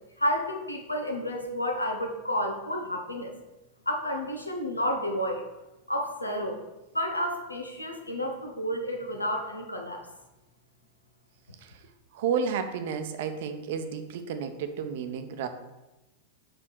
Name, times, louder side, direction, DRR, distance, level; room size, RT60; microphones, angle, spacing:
voice 1, 0.2-3.3 3.8-5.4 5.9-6.6 6.9-10.0, equal, 85° left, 2 dB, 1.2 m, -30 dB
voice 2, 12.1-15.5, right 6 dB, 55° right, 8 dB, 0.8 m, -31 dB
5.4 x 5.2 x 6.3 m, 1.0 s
figure-of-eight pair, 90°, 0 cm